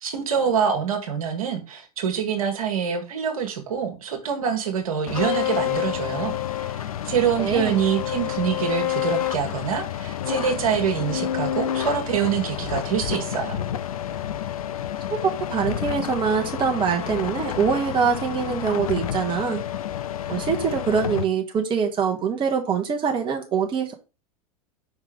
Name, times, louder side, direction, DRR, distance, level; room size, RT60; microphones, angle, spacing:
voice 1, 0.0-13.6, right 7 dB, 65° right, 1.5 m, -25 dB
sound 1, 5.1-21.2, left 11 dB, 65° left, 0.6 m, -29 dB
voice 2, 7.4-7.8 15.1-19.6 20.3-23.9, right 6 dB, 25° right, 1.2 m, -24 dB
5.2 x 3.6 x 5.1 m
figure-of-eight pair, 90°, 19 cm